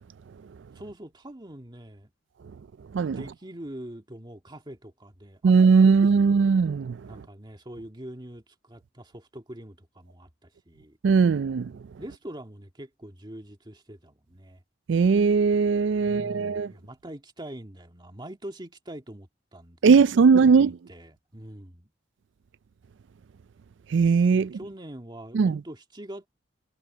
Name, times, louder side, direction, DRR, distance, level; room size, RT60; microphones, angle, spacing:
voice 1, 0.8-2.1 3.2-6.5 7.1-11.0 12.0-14.6 16.0-19.8 20.2-21.9 24.3-26.3, right 1 dB, 25° right, 1.9 m, -43 dB
voice 2, 5.4-7.0 11.0-11.7 14.9-16.7 19.8-20.8 23.9-24.5 25.3-25.6, right 5 dB, 70° right, 0.4 m, -19 dB
head